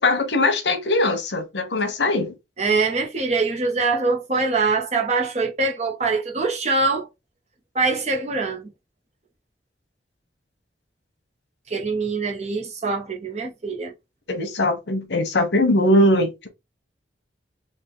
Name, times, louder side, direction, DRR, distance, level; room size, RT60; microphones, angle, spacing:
voice 1, 0.0-2.3 14.3-16.5, left 1 dB, 80° left, 1.0 m, -20 dB
voice 2, 2.6-7.1 7.7-8.7 11.7-13.9, right 3 dB, 40° right, 0.9 m, -23 dB
3.6 x 2.4 x 4.0 m
head